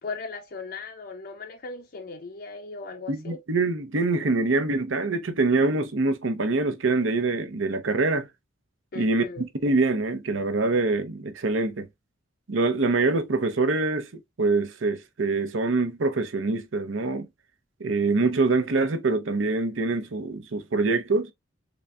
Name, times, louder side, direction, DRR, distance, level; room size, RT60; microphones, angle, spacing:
voice 1, 0.0-3.4 8.9-9.4, left 4 dB, 45° left, 0.5 m, -38 dB
voice 2, 3.1-8.3 8.9-11.9 12.5-14.1 14.4-17.3 17.8-21.3, right 3 dB, 80° right, 0.8 m, -24 dB
4.0 x 3.3 x 2.2 m
head